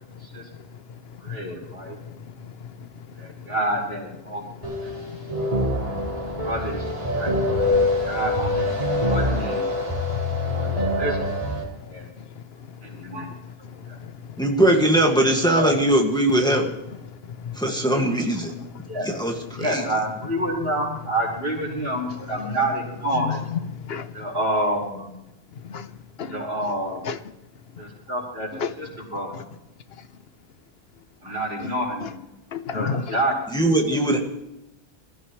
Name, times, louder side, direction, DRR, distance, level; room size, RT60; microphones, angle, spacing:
voice 1, 0.1-3.5 4.3-6.5 7.1-7.2 7.6-8.1 9.0-9.1 9.7-11.0 11.6-14.4 16.4-16.6 16.9-19.0 19.5-19.7 22.3-22.6 23.1-24.3 25.5-26.4 27.0-27.2 27.7-27.8 28.5-28.7 29.3-29.4 30.0-30.1 31.6-31.7 32.0-32.1 32.5-33.2, left 6 dB, 75° left, 12 dB, 1.1 m, -36 dB
voice 2, 1.2-2.0 3.2-4.4 4.8-5.0 6.4-6.8 7.1-7.3 8.0-9.7 10.6-11.2 11.5-12.1 12.8-13.3 13.7-14.0 15.2-15.8 18.9-19.1 19.5-23.4 24.1-25.1 26.2-27.0 27.8-28.5 28.8-29.4 31.2-32.2 32.7-33.3 33.9-34.2, right 1 dB, 70° right, -3 dB, 4.9 m, -28 dB
sound 1, 4.6-11.6, left 1 dB, 35° right, 4.6 m, -24 dB
voice 3, 14.4-16.7 17.6-18.5 19.0-19.3 19.7-19.8 33.5-34.2, right 1 dB, 5° left, 1 dB, 1.9 m, -20 dB
22.0 x 14.5 x 3.2 m, 0.90 s
omnidirectional pair, 1.0 m